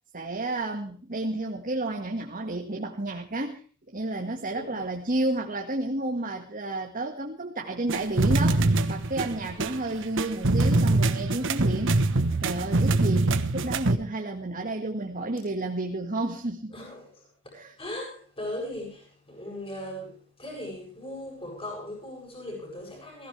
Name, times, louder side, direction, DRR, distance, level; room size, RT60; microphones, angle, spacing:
voice 1, 0.1-3.6 3.9-12.0 12.4-16.7 17.5-17.7, right 2 dB, 40° right, 1.9 m, -31 dB
sound 1, 7.9-14.0, right 2 dB, 60° right, 1.2 m, -24 dB
voice 2, 16.7-23.3, left 1 dB, 25° left, 7.9 m, -39 dB
22.0 x 16.0 x 3.4 m
head